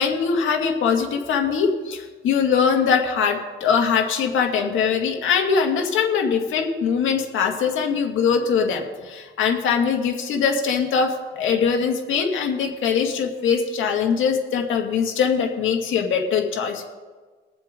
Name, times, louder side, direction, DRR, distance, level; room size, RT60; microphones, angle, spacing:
voice 1, 0.0-16.8, left 6 dB, 80° left, 2 dB, 2.1 m, -22 dB
22.5 x 7.6 x 3.8 m, 1.4 s
cardioid pair, 90°, 20 cm